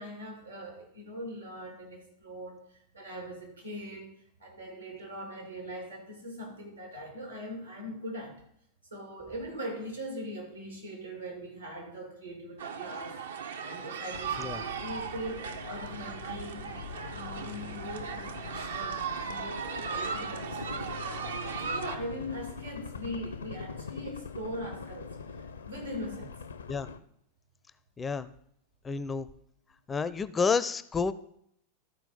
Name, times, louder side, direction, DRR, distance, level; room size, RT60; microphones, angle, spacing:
voice 1, 0.0-4.1 4.4-8.4 8.9-13.2 13.6-16.8 17.1-25.1 25.6-26.3, equal, 90° right, 1 dB, 2.8 m, -41 dB
sound 1, 12.6-22.0, right 6 dB, 65° right, 0.6 m, -37 dB
sound 2, 14.1-27.0, left 5 dB, 70° left, 0.5 m, -43 dB
voice 2, 28.0-28.3 28.8-29.3 29.9-31.1, left 5 dB, 15° left, 15 dB, 0.4 m, -29 dB
13.0 x 4.5 x 5.3 m, 0.70 s
figure-of-eight pair, 90°, 0 cm